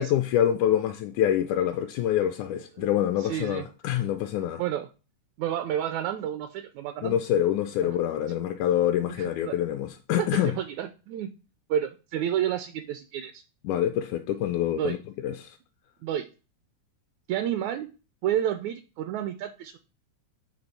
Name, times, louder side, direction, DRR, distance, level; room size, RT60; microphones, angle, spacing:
voice 1, 0.0-4.6 7.0-10.6 13.6-15.0 15.2-15.6, left 11 dB, 80° left, 1.9 m, -26 dB
voice 2, 2.8-3.7 4.6-4.9 5.4-7.2 7.8-8.0 9.1-9.6 10.3-11.3 11.7-13.4 14.7-15.0 16.0-16.3 17.3-17.9 18.2-19.8, right 10 dB, 80° right, 1.7 m, -30 dB
8.8 x 3.1 x 4.1 m
omnidirectional pair, 3.6 m